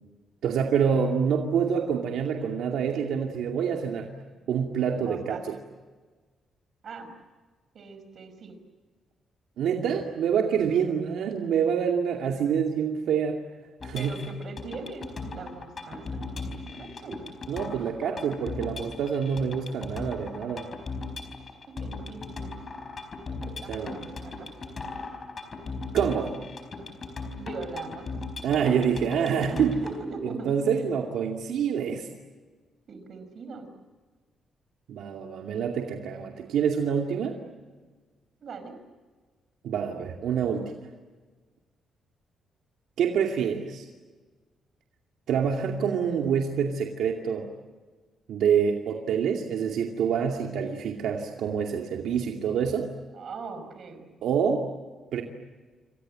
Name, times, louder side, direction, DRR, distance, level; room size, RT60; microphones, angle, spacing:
voice 1, 0.4-4.1 4.5-5.4 9.6-13.4 13.8-14.3 17.5-20.7 23.7-24.0 25.9-26.3 28.4-29.8 30.2-32.1 34.9-37.4 39.6-40.7 43.0-43.9 45.3-47.5 48.3-52.9 54.2-54.7 55.1-55.2, right 7 dB, 75° right, 2 dB, 2.5 m, -26 dB
voice 2, 5.0-5.4 6.8-7.1 7.7-8.5 10.7-10.8 13.9-17.2 21.8-22.5 23.4-24.5 27.4-28.0 29.5-30.7 32.9-33.7 38.4-38.7 53.1-54.1, right 4 dB, 45° right, 8 dB, 5.1 m, -40 dB
sound 1, 13.8-30.0, left 3 dB, 30° left, 4.6 m, -38 dB
28.5 x 26.0 x 7.7 m, 1.4 s
cardioid pair, 175°, 0 cm